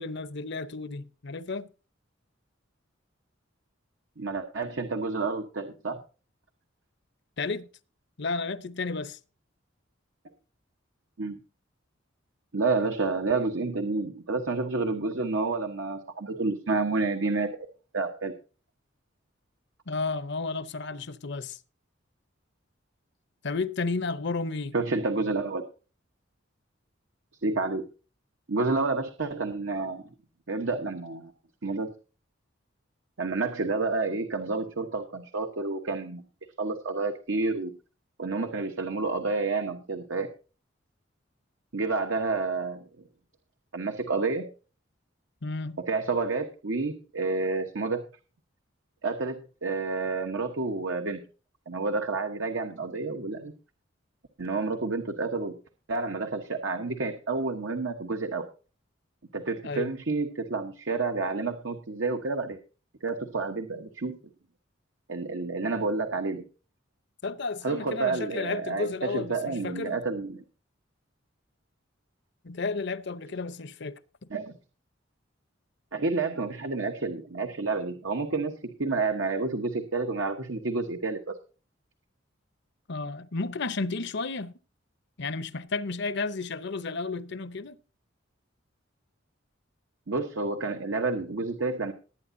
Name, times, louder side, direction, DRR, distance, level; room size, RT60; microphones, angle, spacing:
voice 1, 0.0-1.7 7.4-7.7 8.2-9.2 19.9-21.6 23.4-24.7 45.4-45.8 59.6-59.9 67.2-70.0 72.4-74.0 82.9-84.5 85.2-87.8, left 3 dB, 65° left, 0.8 m, -32 dB
voice 2, 4.2-6.0 11.2-11.4 12.5-17.5 17.9-18.3 24.7-25.6 27.4-27.9 28.5-30.0 30.5-31.3 31.6-31.9 33.2-36.2 36.6-37.7 38.2-40.3 41.7-42.8 43.7-44.5 45.9-48.0 49.0-51.2 51.7-53.5 54.4-55.5 55.9-58.4 59.3-62.6 63.0-64.1 65.1-66.4 67.6-70.4 74.3-74.5 75.9-81.4 90.1-91.9, right 3 dB, 75° right, 1.2 m, -29 dB
19.5 x 9.2 x 2.7 m
head